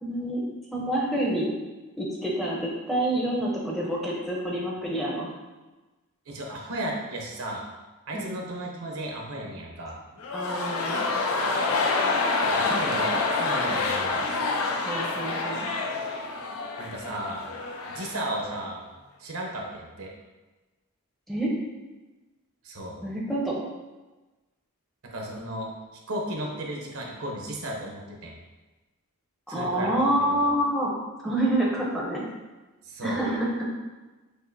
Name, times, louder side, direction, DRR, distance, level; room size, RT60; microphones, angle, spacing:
voice 1, 0.0-1.5 2.0-5.3 8.1-8.4 10.3-11.1 14.8-15.7 21.3-21.5 23.0-23.6 29.5-31.0 31.2-32.2 33.0-33.7, right 1 dB, ahead, -4 dB, 0.6 m, -27 dB
voice 2, 6.3-7.6 8.1-10.0 12.4-14.3 16.8-17.4 17.9-18.8 19.2-20.1 22.6-23.0 25.0-25.7 26.1-28.3 29.5-30.0 32.8-33.2, right 1 dB, 75° right, 0 dB, 0.8 m, -34 dB
sound 1, 10.2-18.3 18.5-18.6, left 3 dB, 75° left, 0.5 m, -27 dB
6.4 x 2.6 x 2.6 m, 1.2 s
head